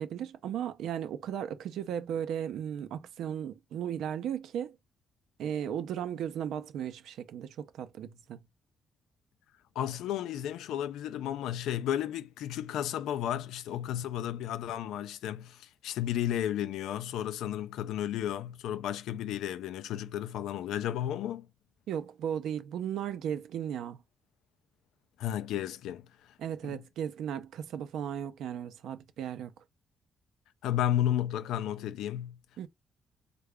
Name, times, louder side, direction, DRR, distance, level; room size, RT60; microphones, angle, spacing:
voice 1, 0.0-4.8 5.4-8.4 21.9-24.0 26.4-29.5 32.6-32.7, right 9 dB, 80° right, 0.5 m, -36 dB
voice 2, 9.8-21.5 25.2-26.1 26.6-26.8 30.6-32.4, left 11 dB, 90° left, 0.3 m, -33 dB
3.7 x 2.3 x 3.3 m
cardioid pair, 85°, 0 cm